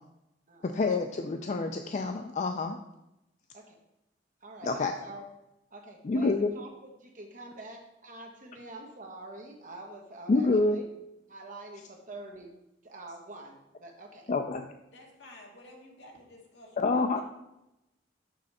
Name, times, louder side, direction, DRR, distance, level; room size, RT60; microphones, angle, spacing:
voice 1, 0.6-2.8 4.6-4.9 6.0-6.5 10.3-10.8 14.3-14.6 16.8-17.2, left 3 dB, 40° left, 6 dB, 0.4 m, -27 dB
voice 2, 4.4-5.2 5.7-10.9 11.3-12.5 12.8-14.3, right 2 dB, 45° right, 1 dB, 1.3 m, -46 dB
voice 3, 14.9-17.2, left 1 dB, 65° left, 0 dB, 1.6 m, -52 dB
6.4 x 6.2 x 4.2 m, 0.91 s
head